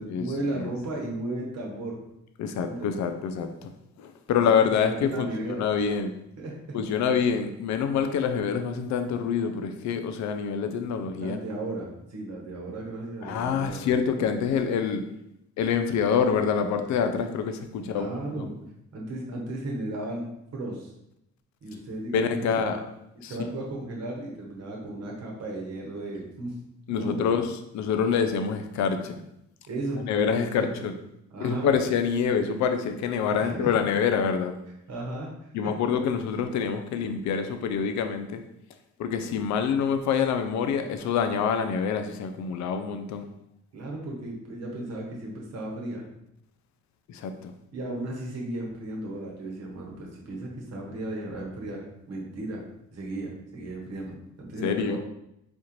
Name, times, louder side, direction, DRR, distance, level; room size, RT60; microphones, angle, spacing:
voice 1, 0.0-2.0 2.6-2.9 4.3-5.9 6.4-6.6 11.2-13.9 17.8-18.5 18.9-20.3 20.5-20.9 21.6-22.8 23.3-26.5 26.9-27.3 29.7-30.7 31.3-31.7 33.4-33.7 34.9-35.7 43.7-46.0 47.7-52.6 52.9-55.0, right 2 dB, 55° right, -1 dB, 1.0 m, -35 dB
voice 2, 2.4-3.7 4.0-6.1 6.7-11.4 13.2-15.0 15.6-18.5 22.1-22.8 23.2-23.3 26.9-29.2 30.0-30.9 31.4-34.5 35.5-38.4 39.0-43.3 47.1-47.5 54.6-55.0, left 6 dB, 70° left, 7 dB, 0.5 m, -26 dB
4.3 x 2.5 x 2.9 m, 0.81 s
cardioid pair, 90°, 30 cm